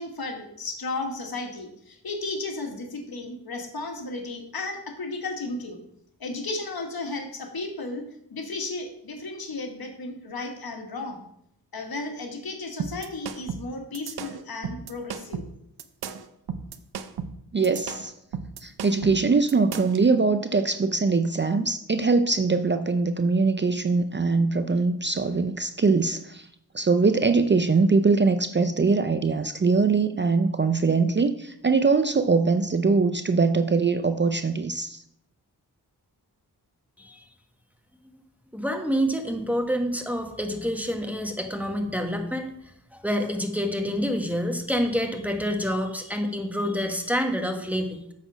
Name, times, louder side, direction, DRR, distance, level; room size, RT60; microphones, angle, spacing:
voice 1, 0.0-5.8 6.2-8.0 8.3-11.2 11.7-15.5, left 3 dB, 65° left, 3 dB, 1.6 m, -34 dB
sound 1, 12.8-20.0, right 6 dB, 70° right, 0.7 m, -35 dB
voice 2, 17.5-18.1 18.6-26.5 26.7-35.0, right 4 dB, 30° right, 9 dB, 0.5 m, -22 dB
voice 3, 38.5-42.5 42.9-48.0, equal, 5° right, 4 dB, 1.4 m, -27 dB
7.9 x 4.2 x 6.1 m, 0.74 s
cardioid pair, 45°, 39 cm